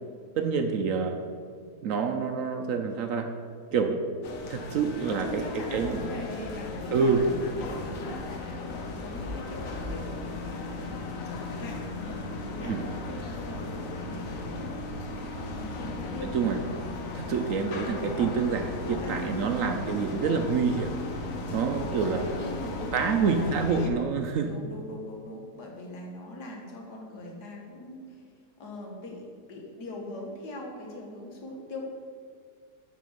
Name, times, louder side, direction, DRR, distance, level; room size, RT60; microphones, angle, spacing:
voice 1, 0.4-1.2 1.8-3.3 3.7-4.0 4.5-5.4 5.7-6.1 6.9-7.2 12.6-12.8 16.2-16.6 17.1-20.9 21.5-22.2 22.9-24.5, right 5 dB, 65° right, 5 dB, 0.9 m, -27 dB
sound 1, 4.2-23.9, left 3 dB, 60° left, 1.2 m, -36 dB
voice 2, 5.1-14.7 15.5-16.4 18.6-19.6 22.2-23.5 24.4-28.2 28.6-31.9, left 1 dB, 80° left, -1 dB, 2.0 m, -41 dB
9.2 x 4.2 x 6.4 m, 2.1 s
omnidirectional pair, 1.7 m